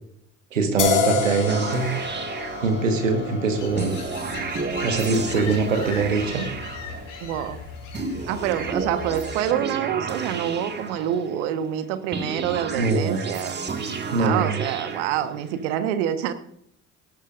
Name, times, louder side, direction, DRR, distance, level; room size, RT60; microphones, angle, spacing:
voice 1, 0.5-2.2 2.6-4.0 4.8-6.5 12.7-13.2 14.1-14.6, right 4 dB, 85° right, 6 dB, 1.6 m, -23 dB
sound 1, 0.8-8.1, left 5 dB, 55° left, 3.2 m, -30 dB
sound 2, 1.5-3.2 3.8-7.3 7.9-11.5 12.1-15.6, right 4 dB, 25° right, 2.1 m, -32 dB
sound 3, 3.6-9.4, left 5 dB, 75° left, 4.2 m, -39 dB
voice 2, 7.2-7.6 8.3-13.6 14.2-16.3, right 10 dB, 70° right, 10 dB, 1.4 m, -27 dB
18.5 x 12.0 x 2.6 m, 0.69 s
figure-of-eight pair, 60°, 38 cm